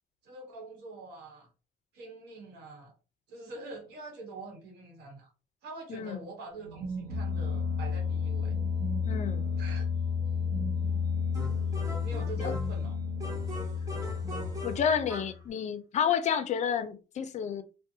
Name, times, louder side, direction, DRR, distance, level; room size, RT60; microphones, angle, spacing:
voice 1, 0.2-1.5 1.9-2.9 3.3-5.3 5.6-8.6 9.6-9.9 12.0-13.0, right 3 dB, 80° right, 1.0 m, -45 dB
sound 1, 6.6-15.4, left 5 dB, 60° right, 0.7 m, -32 dB
voice 2, 9.1-9.5 12.4-12.5 14.6-17.6, left 7 dB, 45° left, 0.4 m, -30 dB
sound 2, 11.3-12.8 13.2-15.4, equal, 20° right, 0.7 m, -40 dB
2.5 x 2.1 x 2.6 m
cardioid pair, 110°, 17 cm